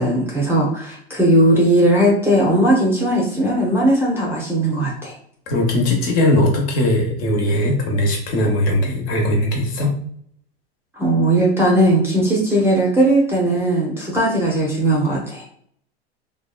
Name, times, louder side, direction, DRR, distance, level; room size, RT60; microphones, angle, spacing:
voice 1, 0.0-5.1 11.0-15.4, right 1 dB, 5° right, -3 dB, 0.6 m, -18 dB
voice 2, 5.5-9.9, left 1 dB, 50° left, 1 dB, 0.9 m, -19 dB
2.8 x 2.2 x 2.3 m, 0.63 s
hypercardioid pair, 95°, 32 cm